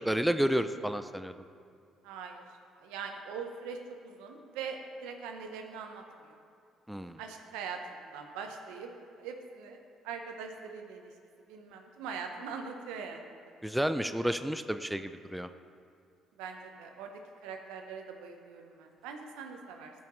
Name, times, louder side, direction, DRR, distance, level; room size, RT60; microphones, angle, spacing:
voice 1, 0.0-1.4 6.9-7.2 13.6-15.5, equal, 5° right, 10 dB, 0.4 m, -31 dB
voice 2, 2.0-2.4 2.8-3.8 4.0-6.4 7.2-8.9 9.2-11.1 11.5-13.5 16.4-17.1 17.4-19.9, right 5 dB, 85° right, 4 dB, 0.8 m, -42 dB
14.0 x 5.5 x 3.1 m, 2.5 s
supercardioid pair, 70°, 0 cm